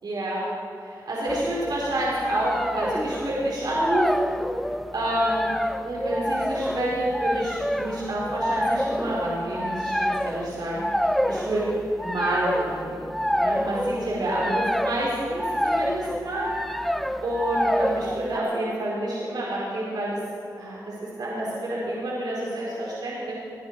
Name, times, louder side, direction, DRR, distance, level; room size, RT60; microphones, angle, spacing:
voice 1, 0.0-0.4 0.8-4.3 4.9-5.5 5.8-11.6 12.0-13.1 13.3-16.5 17.2-20.2 20.6-23.3, right 1 dB, 75° right, -6 dB, 4.4 m, -28 dB
sound 1, 1.3-18.4, equal, ahead, 0.6 m, -28 dB
21.5 x 11.0 x 4.7 m, 2.3 s
cardioid pair, 65°, 7 cm